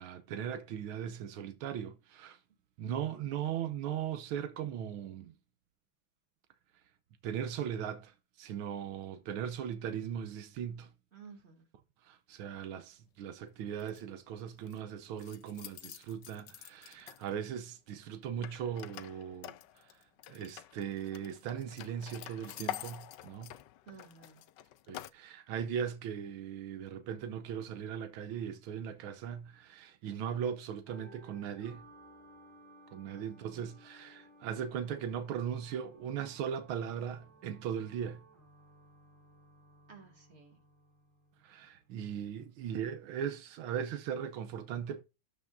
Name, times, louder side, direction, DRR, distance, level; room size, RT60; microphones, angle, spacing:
voice 1, 0.0-2.4 2.8-5.3 7.2-10.9 12.0-19.9 20.3-23.5 24.9-31.9 32.9-38.2 41.4-45.0, right 8 dB, 90° right, 1.6 m, -38 dB
voice 2, 11.1-11.7 23.8-24.4 33.1-33.7 39.9-40.6, right 5 dB, 30° right, 2.6 m, -54 dB
sound 1, 13.8-14.0 14.4-14.8 15.2-17.5 18.4-25.1, left 13 dB, 70° left, 1.1 m, -47 dB
sound 2, 30.9-41.9, right 1 dB, 10° left, 3.6 m, -59 dB
12.5 x 6.0 x 2.6 m
omnidirectional pair, 2.3 m